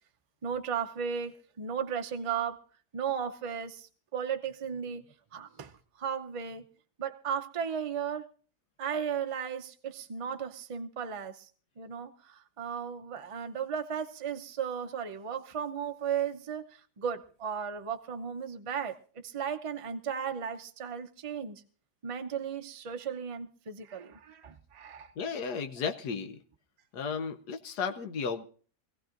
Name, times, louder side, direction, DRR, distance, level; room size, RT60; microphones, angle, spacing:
voice 1, 0.4-2.6 2.9-5.0 5.3-5.7 6.0-6.6 7.0-8.3 8.8-11.5 11.8-16.7 17.0-21.6 22.0-25.1, right 7 dB, 40° right, 0.5 m, -35 dB
voice 2, 25.2-26.4 26.9-28.4, left 6 dB, 80° left, 1.4 m, -34 dB
24.5 x 15.5 x 2.6 m
omnidirectional pair, 1.7 m